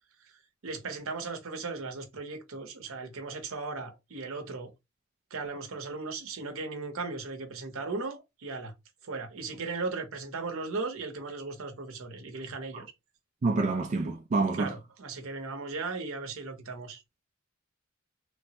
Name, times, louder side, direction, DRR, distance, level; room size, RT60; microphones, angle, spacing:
voice 1, 0.6-4.7 5.3-8.7 9.0-12.8 14.5-17.0, right 3 dB, 85° right, 0.7 m, -37 dB
voice 2, 13.4-14.7, right 3 dB, 35° right, 0.3 m, -27 dB
3.1 x 2.0 x 2.8 m
head